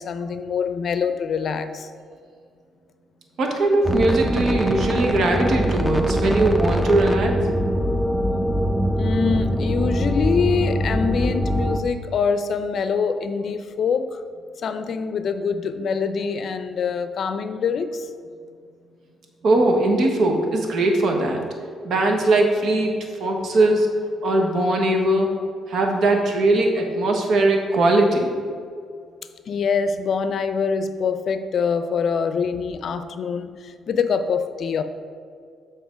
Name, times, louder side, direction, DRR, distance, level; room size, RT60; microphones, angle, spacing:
voice 1, 0.0-1.9 8.9-14.2 14.6-18.1 29.5-34.8, left 6 dB, 60° left, 9 dB, 0.5 m, -24 dB
voice 2, 3.4-7.3 19.4-21.4 21.8-22.9 23.2-23.9 24.2-25.4 25.7-28.3, right 2 dB, 65° right, 2 dB, 1.1 m, -20 dB
sound 1, 3.8-11.8, equal, ahead, 0.5 m, -23 dB
7.2 x 4.3 x 5.0 m, 2.2 s
cardioid pair, 90°, 0 cm